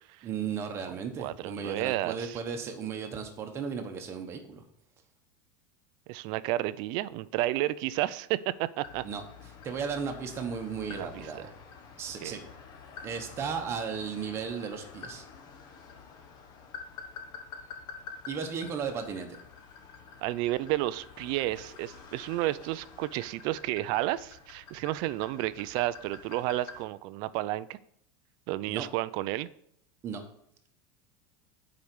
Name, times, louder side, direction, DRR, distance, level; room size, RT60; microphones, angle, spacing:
voice 1, 0.2-4.6 9.0-9.2 9.6-11.5 12.0-12.4 13.0-15.2 18.3-19.4 28.7-28.9 30.0-30.2, right 6 dB, 25° right, 5 dB, 1.1 m, -35 dB
voice 2, 0.9-2.4 6.1-9.0 10.9-11.3 12.2-12.4 20.2-27.8 28.5-29.5, right 16 dB, 45° right, 17 dB, 0.4 m, -31 dB
sound 1, 8.8-26.9, left 5 dB, 35° left, 1.0 m, -48 dB
8.5 x 5.0 x 6.1 m, 0.70 s
supercardioid pair, 165°, 11 cm